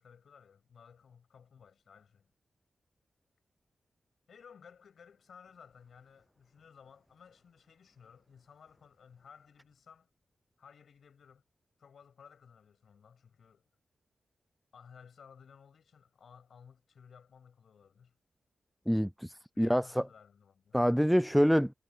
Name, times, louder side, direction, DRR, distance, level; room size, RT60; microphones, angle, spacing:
voice 1, 0.0-2.3 4.3-10.1 10.6-11.4 11.8-13.7 14.7-18.1 19.5-20.8, left 7 dB, 75° left, 7.8 m, -57 dB
voice 2, 18.9-20.0 20.7-21.7, equal, ahead, 0.3 m, -26 dB
cardioid pair, 50°, 0 cm